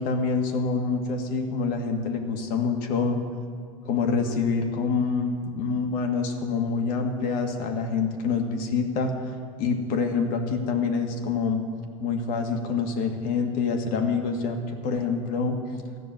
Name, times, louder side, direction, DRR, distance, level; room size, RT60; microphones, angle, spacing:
voice 1, 0.0-3.2 3.9-9.1 9.6-11.6 12.0-15.6, left 5 dB, 55° left, 4 dB, 1.9 m, -26 dB
14.0 x 6.6 x 9.2 m, 2.2 s
hypercardioid pair, 90°, 18 cm